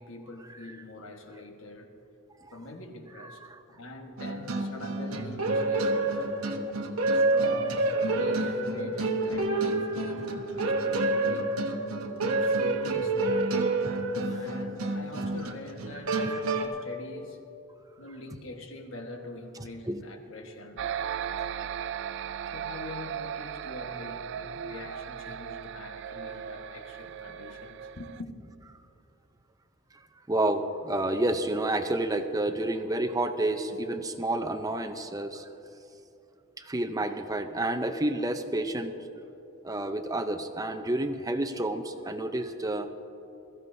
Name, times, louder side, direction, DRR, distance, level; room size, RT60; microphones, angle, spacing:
voice 1, 0.0-1.9 2.5-3.4 3.7-6.5 7.1-11.5 12.2-13.8 14.2-16.2 16.6-17.4 18.0-21.7 22.5-28.3, left 2 dB, 65° left, 3 dB, 1.4 m, -44 dB
voice 2, 3.2-3.6 10.7-10.8 13.9-14.0 16.1-16.4 19.9-20.0 29.9-30.0 30.3-35.5 36.6-39.0 39.6-42.9, right 1 dB, 15° right, 7 dB, 0.6 m, -30 dB
sound 1, 4.2-16.7, right 2 dB, 85° right, 1.1 m, -28 dB
sound 2, 20.8-28.2, right 8 dB, 55° right, 0.3 m, -37 dB
22.0 x 14.5 x 2.7 m, 3.0 s
head